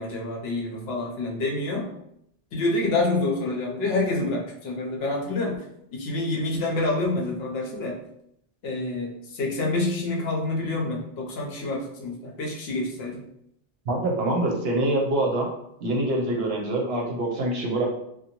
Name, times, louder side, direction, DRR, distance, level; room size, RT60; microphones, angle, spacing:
voice 1, 0.0-1.9 2.5-5.7 5.9-8.0 8.6-13.2, left 2 dB, 65° left, -1 dB, 0.8 m, -27 dB
voice 2, 13.9-15.5 15.8-17.9, right 1 dB, 65° right, 0 dB, 0.8 m, -25 dB
2.6 x 2.2 x 2.8 m, 0.76 s
omnidirectional pair, 1.2 m